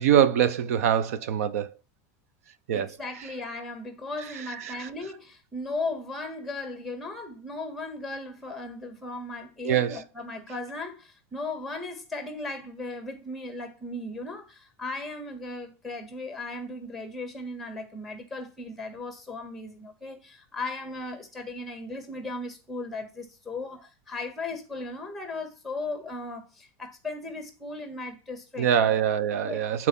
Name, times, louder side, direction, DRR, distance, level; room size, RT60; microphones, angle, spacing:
voice 1, 0.0-1.7 2.7-2.9 4.5-4.9 9.6-10.0 28.6-29.9, right 9 dB, 85° right, 0.8 m, -24 dB
voice 2, 2.7-29.0 29.4-29.6, left 2 dB, ahead, 1.6 m, -37 dB
8.5 x 4.5 x 5.5 m
supercardioid pair, 160°, 8 cm